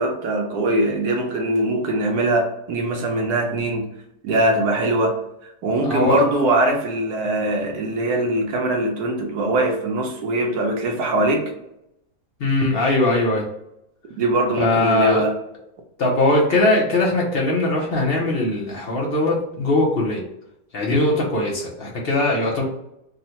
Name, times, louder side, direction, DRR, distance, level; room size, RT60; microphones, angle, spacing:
voice 1, 0.0-3.9 4.2-5.1 5.6-11.5 14.2-15.3, right 1 dB, 75° right, 2 dB, 1.2 m, -21 dB
voice 2, 5.8-6.2 12.4-13.4 14.6-15.2 16.0-20.2 20.7-22.6, left 2 dB, 55° left, -2 dB, 0.7 m, -20 dB
3.7 x 2.1 x 2.8 m, 0.83 s
omnidirectional pair, 1.7 m